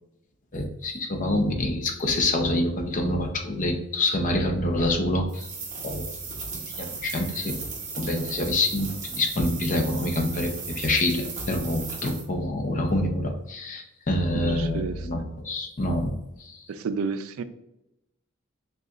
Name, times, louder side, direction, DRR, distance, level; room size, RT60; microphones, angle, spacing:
voice 1, 0.5-5.5 5.8-6.1 6.5-7.5 8.0-16.1 16.4-16.7, left 1 dB, 40° left, 3 dB, 0.6 m, -26 dB
sound 1, 5.3-12.2, right 4 dB, 35° right, 0.9 m, -36 dB
voice 2, 14.3-15.1 16.7-17.4, right 5 dB, 75° right, 11 dB, 0.3 m, -31 dB
6.5 x 2.4 x 2.4 m, 0.89 s
head